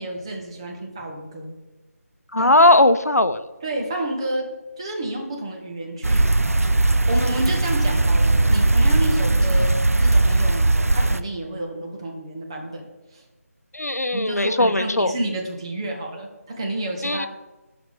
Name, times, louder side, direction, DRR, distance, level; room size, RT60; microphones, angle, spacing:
voice 1, 0.0-1.5 2.4-2.7 3.6-4.5 4.8-6.3 7.1-12.9 13.1-13.2 14.1-17.3, right 1 dB, 20° right, 1 dB, 0.9 m, -30 dB
voice 2, 2.3-3.4 13.7-15.1 17.0-17.3, left 2 dB, 85° left, 12 dB, 0.6 m, -18 dB
sound 1, 6.0-11.2, right 2 dB, 65° right, 0.5 m, -18 dB
11.5 x 5.1 x 3.6 m, 1.1 s
figure-of-eight pair, 160°, 8 cm